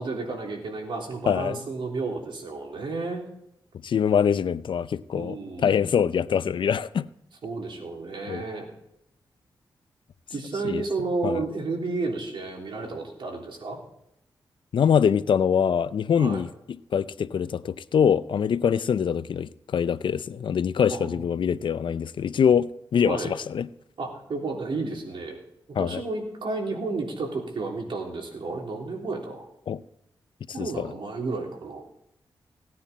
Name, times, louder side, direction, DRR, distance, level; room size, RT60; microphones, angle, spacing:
voice 1, 0.0-3.2 5.1-5.9 7.4-8.7 10.3-13.8 16.2-16.4 20.9-21.2 23.0-23.3 24.0-25.4 25.8-29.4 30.5-31.8, right 3 dB, 70° right, 3.3 m, -32 dB
voice 2, 1.3-1.6 3.8-7.0 8.3-8.4 10.6-10.8 11.2-11.4 14.7-16.5 16.9-23.7 25.8-26.0 29.7-29.8 30.6-30.9, left 7 dB, 70° left, 0.5 m, -24 dB
17.0 x 9.6 x 4.3 m
cardioid pair, 75°, 9 cm